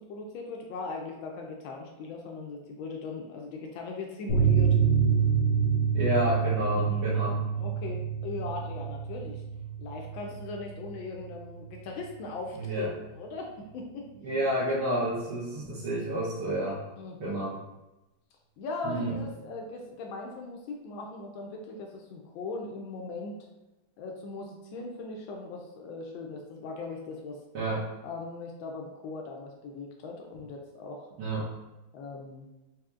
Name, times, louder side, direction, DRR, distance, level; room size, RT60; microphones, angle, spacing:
voice 1, 0.1-4.7 6.7-7.1 7.6-9.4 9.8-12.9 13.1-14.1 17.0-17.4 18.6-23.4 24.0-27.4 28.0-31.1 31.9-32.5, left 3 dB, 80° left, 1 dB, 1.3 m, -39 dB
sound 1, 4.3-11.4 11.6-11.8 12.1-12.2, right 7 dB, 65° left, 1.0 m, -27 dB
voice 2, 5.9-7.4 12.5-12.9 14.2-16.8 17.2-17.6 18.8-19.2 27.5-27.9 31.2-31.5, right 1 dB, 85° right, -10 dB, 1.8 m, -30 dB
4.9 x 2.7 x 2.4 m, 1.0 s
omnidirectional pair, 2.2 m